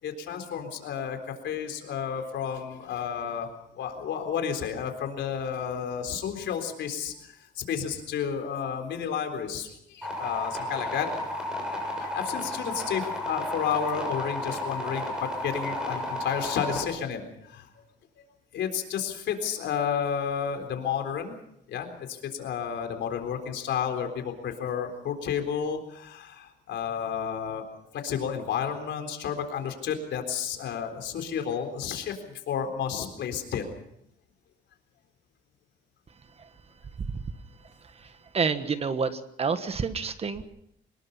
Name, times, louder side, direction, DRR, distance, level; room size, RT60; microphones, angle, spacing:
voice 1, 0.0-11.1 12.0-17.7 18.5-21.3 21.7-27.6 27.9-33.6, left 7 dB, 80° left, 6 dB, 4.0 m, -31 dB
sound 1, 10.0-16.8, left 1 dB, 5° right, 7.1 m, -33 dB
voice 2, 38.3-40.4, right 5 dB, 35° right, 10 dB, 1.4 m, -28 dB
24.0 x 21.0 x 5.6 m, 0.76 s
cardioid pair, 140°, 19 cm